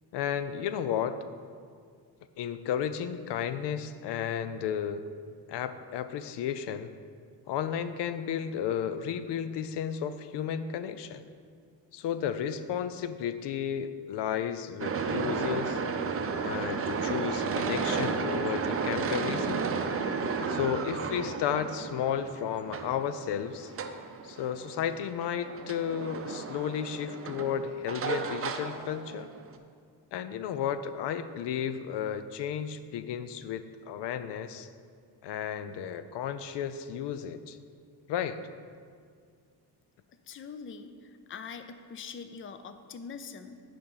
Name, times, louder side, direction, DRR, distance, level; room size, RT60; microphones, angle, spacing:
voice 1, 0.1-1.2 2.4-5.0 5.5-6.9 7.5-11.3 11.9-15.8 16.4-19.6 20.0-20.1 20.5-23.7 24.2-29.3 30.1-34.7 35.2-37.6 38.1-38.4, left 9 dB, 75° left, 12 dB, 0.5 m, -33 dB
sound 1, 14.8-29.6, right 5 dB, 35° right, 0.6 m, -33 dB
voice 2, 40.3-43.6, left 5 dB, 30° left, 9 dB, 0.5 m, -43 dB
9.5 x 5.1 x 5.5 m, 2.1 s
cardioid pair, 120°, 41 cm